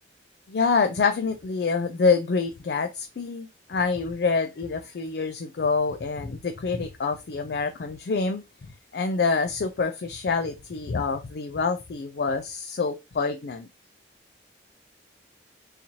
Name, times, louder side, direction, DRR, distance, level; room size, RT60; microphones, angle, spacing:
voice 1, 0.5-13.7, left 4 dB, 60° left, 0.4 m, -26 dB
4.0 x 2.7 x 2.8 m
head